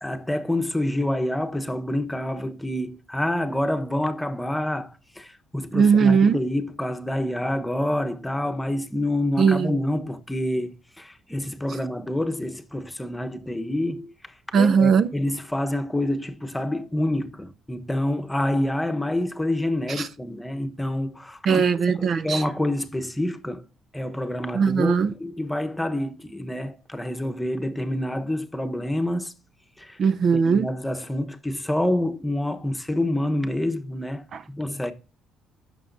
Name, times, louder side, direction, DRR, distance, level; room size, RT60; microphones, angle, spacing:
voice 1, 0.0-14.1 14.5-21.6 22.0-23.7 23.9-29.3 29.8-30.0 30.3-34.9, left 1 dB, 5° left, 1.0 m, -27 dB
voice 2, 5.7-6.4 9.4-9.7 14.5-15.1 20.0-20.1 21.5-22.4 24.5-25.1 30.0-30.7 34.3-34.4, right 6 dB, 50° right, 0.5 m, -19 dB
16.0 x 6.2 x 2.6 m
cardioid pair, 110°, 0 cm